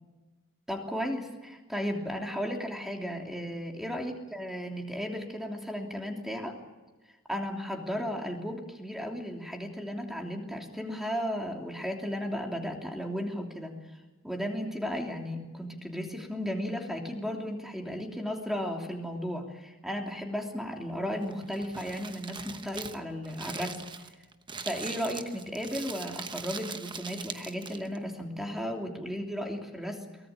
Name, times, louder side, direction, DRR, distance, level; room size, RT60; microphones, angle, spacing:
voice 1, 0.7-6.6 7.3-13.8 14.2-23.8 24.6-30.0, equal, ahead, 2 dB, 3.1 m, -35 dB
Crumpling crinkling, 21.2-28.0, right 5 dB, 25° right, 1.0 m, -41 dB
23.0 x 19.0 x 9.0 m, 1.2 s
head